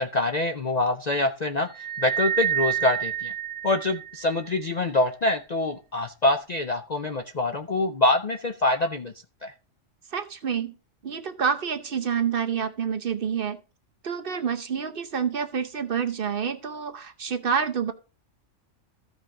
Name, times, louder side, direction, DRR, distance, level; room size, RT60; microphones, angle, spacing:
voice 1, 0.0-3.3 3.6-9.1 9.4-9.5, left 2 dB, 50° left, 7 dB, 0.5 m, -25 dB
sound 1, 1.7-4.4, right 9 dB, 10° right, 0.8 m, -28 dB
voice 2, 10.1-10.7 11.0-13.6 14.0-17.9, right 7 dB, 50° right, 8 dB, 0.9 m, -28 dB
14.5 x 5.4 x 3.7 m, 0.33 s
omnidirectional pair, 1.3 m